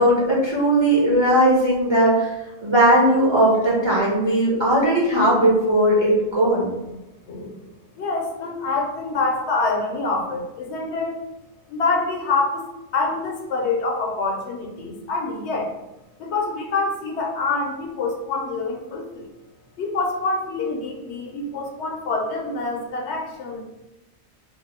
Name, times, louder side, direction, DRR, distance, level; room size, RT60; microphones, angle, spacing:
voice 1, 0.0-2.3 2.6-6.7, right 1 dB, 35° right, -5 dB, 0.5 m, -18 dB
voice 2, 7.3-7.6 8.0-11.2 11.7-12.7 12.9-15.7 16.2-19.3 19.8-23.6, left 3 dB, 75° left, 0 dB, 0.9 m, -26 dB
2.6 x 2.1 x 4.0 m, 0.97 s
omnidirectional pair, 1.2 m